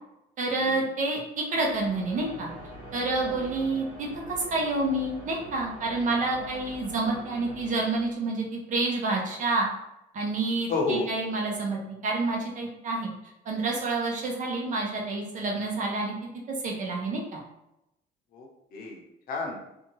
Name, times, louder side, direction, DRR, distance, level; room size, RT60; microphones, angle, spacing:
voice 1, 0.4-2.5 2.9-9.7 10.1-13.1 13.5-16.1 16.6-17.4, right 2 dB, 50° right, -1 dB, 0.8 m, -28 dB
sound 1, 1.5-8.4, equal, 80° right, 1.2 m, -45 dB
voice 2, 10.7-11.1 18.3-19.6, left 3 dB, 60° left, 0 dB, 0.8 m, -32 dB
2.7 x 2.3 x 3.0 m, 0.86 s
cardioid pair, 110°, 17 cm